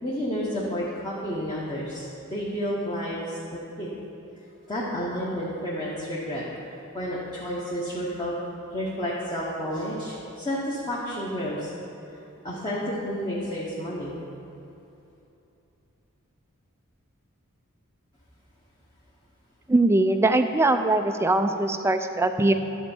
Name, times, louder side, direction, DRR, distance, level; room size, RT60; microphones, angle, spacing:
voice 1, 0.0-3.9 4.7-6.5 6.9-8.3 8.7-11.7 12.4-14.2, equal, 20° left, -7 dB, 1.1 m, -31 dB
voice 2, 19.7-22.5, right 2 dB, 10° right, 8 dB, 0.4 m, -21 dB
11.5 x 4.4 x 7.1 m, 2.9 s
head